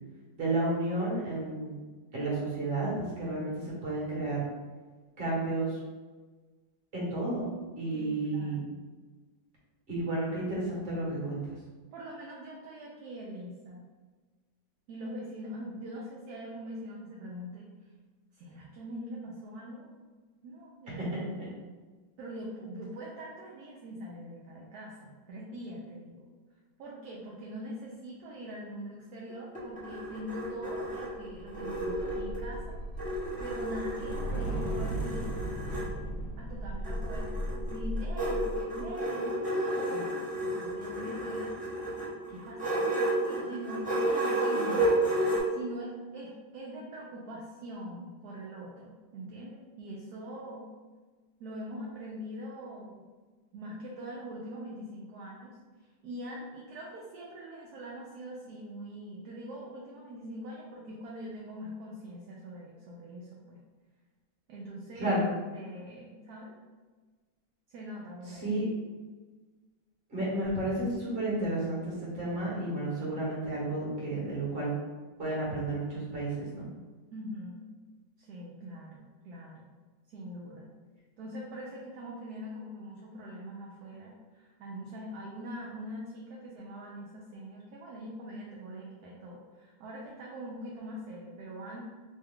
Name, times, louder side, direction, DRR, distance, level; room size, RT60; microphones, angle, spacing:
voice 1, 0.4-1.8 2.1-4.4 5.2-5.8 6.9-7.5 7.8-8.7 9.9-11.5 21.0-21.1 65.0-65.2 68.4-68.7 70.1-74.7 75.2-76.7, right 2 dB, 35° right, -6 dB, 1.2 m, -32 dB
voice 2, 7.9-8.7 11.9-13.9 14.9-17.7 18.3-19.9 20.4-21.3 22.2-26.2 26.8-32.8 33.4-35.3 36.4-38.5 38.7-42.0 42.3-45.0 45.5-50.7 51.4-53.0 53.5-63.6 64.5-65.2 65.5-66.5 67.7-68.6 77.1-77.7 78.2-79.7 80.1-80.7 81.2-91.9, equal, 70° right, -3 dB, 0.9 m, -43 dB
sound 1, 29.3-32.6 33.0-35.9 36.8-45.4, right 1 dB, 10° right, 0.4 m, -32 dB
sound 2, 30.9-38.9, right 1 dB, 60° left, 1.0 m, -36 dB
3.2 x 2.2 x 3.4 m, 1.3 s
omnidirectional pair, 2.0 m